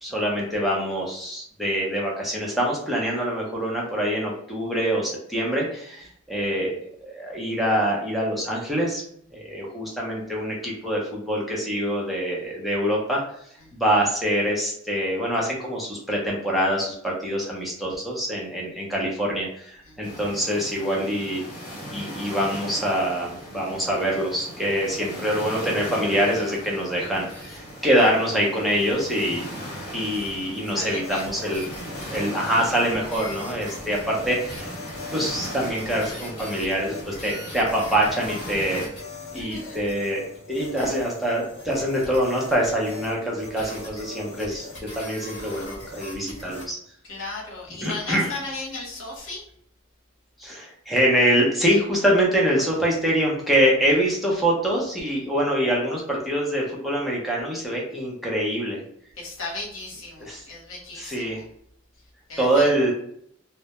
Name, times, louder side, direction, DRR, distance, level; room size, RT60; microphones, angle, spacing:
voice 1, 0.0-6.7 7.0-9.0 9.3-13.2 13.7-21.5 21.9-29.4 29.9-31.6 32.1-34.8 35.1-38.8 39.3-46.8 47.8-48.3 50.4-58.8 60.2-60.4 61.0-61.4 62.4-62.9, equal, ahead, -4 dB, 0.5 m, -25 dB
sound 1, 20.0-38.9, equal, 50° left, 1.1 m, -38 dB
sound 2, 27.1-46.7, left 3 dB, 30° left, 1.1 m, -41 dB
voice 2, 30.7-31.5 39.2-39.9 47.0-49.4 59.2-61.5 62.3-62.7, left 3 dB, 85° left, -3 dB, 0.9 m, -36 dB
2.2 x 2.0 x 2.8 m, 0.67 s
head